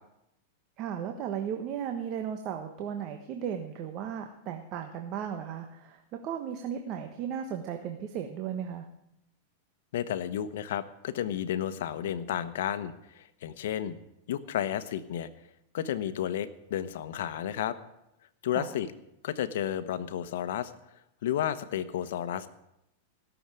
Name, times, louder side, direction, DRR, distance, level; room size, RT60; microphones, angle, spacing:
voice 1, 0.8-8.9 18.5-18.7, right 8 dB, 40° right, 5 dB, 1.3 m, -35 dB
voice 2, 9.9-14.0 14.3-15.3 15.7-17.8 18.4-18.9 19.2-20.7 21.2-22.5, left 10 dB, 70° left, 13 dB, 1.1 m, -32 dB
17.0 x 7.1 x 9.1 m, 0.84 s
supercardioid pair, 140°, 0 cm